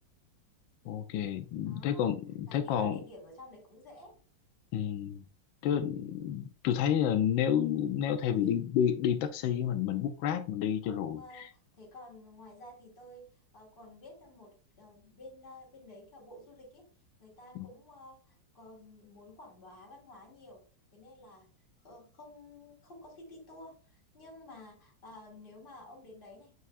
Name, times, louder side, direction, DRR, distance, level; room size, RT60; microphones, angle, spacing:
voice 1, 0.8-3.0 4.7-5.2 5.6-11.5 17.5-17.7, left 9 dB, 75° left, 1.3 m, -30 dB
voice 2, 1.6-2.0 2.5-4.2 8.2-8.6 10.8-13.3 13.5-16.8 17.2-20.6 20.9-21.5 21.8-26.5, left 1 dB, 25° left, 2.6 m, -52 dB
8.3 x 4.7 x 2.4 m
omnidirectional pair, 2.2 m